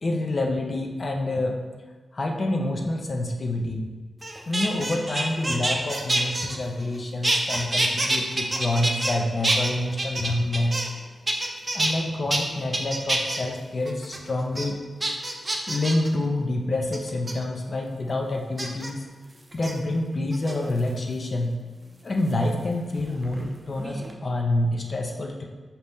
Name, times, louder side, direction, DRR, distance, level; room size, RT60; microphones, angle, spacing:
voice 1, 0.0-1.5 2.1-3.8 4.5-10.8 11.7-14.8 15.7-19.0 19.5-21.5 22.0-25.4, left 1 dB, 55° left, 1 dB, 0.5 m, -27 dB
sound 1, 4.2-7.0 7.2-9.2 9.4-11.0 11.3-11.9 12.3-12.4 12.7-13.4 13.9-14.2 14.6-14.7 15.0-16.1 16.9-17.3 18.6-18.9 19.5-19.7 20.3-20.9 22.3-23.5 23.8-24.1, right 1 dB, 30° right, 0.5 m, -27 dB
3.9 x 2.8 x 3.5 m, 1.4 s
cardioid pair, 65°, 0 cm